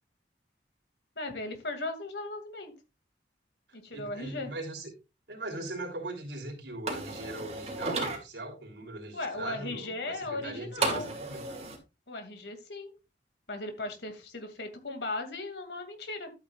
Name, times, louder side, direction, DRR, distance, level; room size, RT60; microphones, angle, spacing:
voice 1, 1.2-2.7 3.7-4.5 9.1-11.1 12.1-12.9 13.5-16.3, left 2 dB, 70° left, 2.3 m, -37 dB
voice 2, 3.9-4.9 5.3-11.4, right 2 dB, 80° right, 3.2 m, -40 dB
sound 1, 6.9-8.2 10.8-11.8, right 3 dB, 35° right, 2.2 m, -33 dB
12.0 x 8.5 x 2.4 m
head